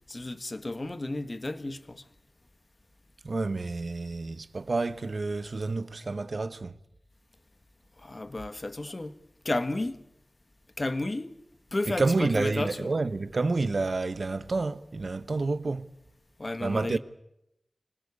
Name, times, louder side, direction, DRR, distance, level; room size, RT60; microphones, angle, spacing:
voice 1, 0.1-2.0 8.0-9.2 9.4-10.0 10.8-11.3 11.7-12.9 16.4-17.0, left 2 dB, 45° left, 1.5 m, -32 dB
voice 2, 3.2-6.8 11.9-15.9 16.6-17.0, right 3 dB, 65° right, 1.0 m, -29 dB
25.5 x 19.5 x 8.4 m
wide cardioid pair, 55°, 0 cm